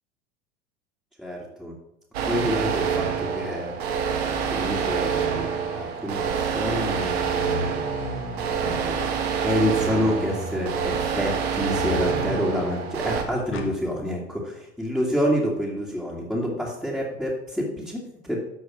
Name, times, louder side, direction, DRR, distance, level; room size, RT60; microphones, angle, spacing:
voice 1, 1.2-1.7 2.3-3.7 4.5-7.4 8.6-9.0 9.4-18.4, equal, ahead, -7 dB, 2.3 m, -28 dB
sound 1, 2.1-13.2, right 6 dB, 65° right, 1.8 m, -27 dB
sound 2, 7.2-9.2 9.9-10.9 11.7-12.7 13.5-13.8, left 4 dB, 35° left, 1.8 m, -35 dB
13.5 x 4.6 x 6.2 m, 0.88 s
figure-of-eight pair, 80°, 34 cm